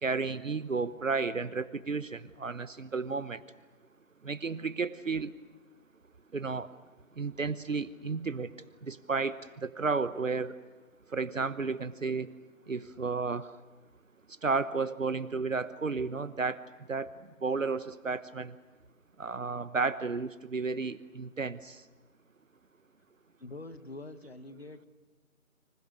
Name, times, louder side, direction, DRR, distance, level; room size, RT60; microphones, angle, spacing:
voice 1, 0.0-3.4 4.2-5.3 6.3-6.7 7.2-8.5 8.9-10.5 11.1-12.3 12.7-13.5 14.4-16.6 16.9-17.1 17.4-18.5 19.2-21.8, right 4 dB, 65° right, 15 dB, 1.1 m, -32 dB
voice 2, 23.4-24.9, left 2 dB, 45° left, 11 dB, 1.6 m, -45 dB
29.0 x 26.5 x 6.6 m, 1.3 s
figure-of-eight pair, 175°, 42 cm